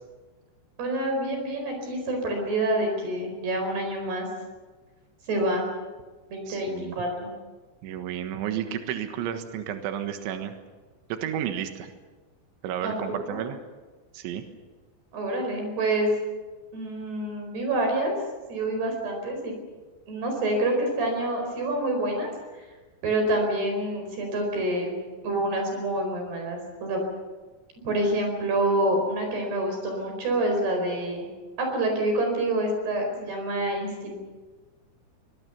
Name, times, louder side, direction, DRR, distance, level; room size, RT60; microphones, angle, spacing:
voice 1, 0.8-4.3 5.3-5.6 6.3-7.3 12.8-13.0 13.3-13.4 15.1-16.1 16.7-18.1 18.5-19.5 20.1-22.3 23.0-24.9 25.2-27.0 27.8-31.3 31.6-34.2, right 1 dB, 60° right, 3 dB, 6.5 m, -27 dB
voice 2, 6.5-7.0 7.8-10.5 11.1-11.9 12.6-13.6 14.1-14.4, right 10 dB, 80° right, 6 dB, 3.8 m, -32 dB
24.5 x 21.5 x 7.0 m, 1.3 s
omnidirectional pair, 5.4 m